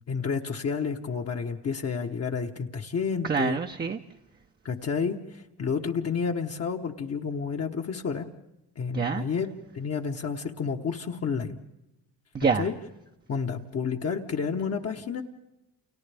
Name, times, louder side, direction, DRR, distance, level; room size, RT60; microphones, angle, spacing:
voice 1, 0.0-3.6 4.6-8.3 8.8-9.5 9.7-11.6 12.6-12.7 13.3-15.2, left 6 dB, 40° left, 2 dB, 1.1 m, -30 dB
voice 2, 3.2-4.0 8.9-9.2 12.3-12.7, right 5 dB, 25° right, 3 dB, 0.7 m, -26 dB
30.0 x 29.0 x 3.4 m, 0.94 s
cardioid pair, 135°, 39 cm